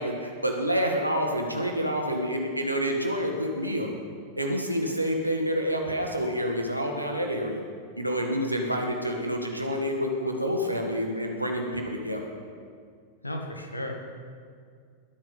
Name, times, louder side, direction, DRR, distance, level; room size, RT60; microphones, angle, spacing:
voice 1, 0.0-3.9 4.4-7.6 8.0-12.3, equal, 85° right, 2 dB, 1.7 m, -28 dB
voice 2, 13.2-13.9, left 1 dB, 85° left, 3 dB, 1.8 m, -34 dB
20.0 x 8.9 x 5.6 m, 2.2 s
figure-of-eight pair, 90°, 0 cm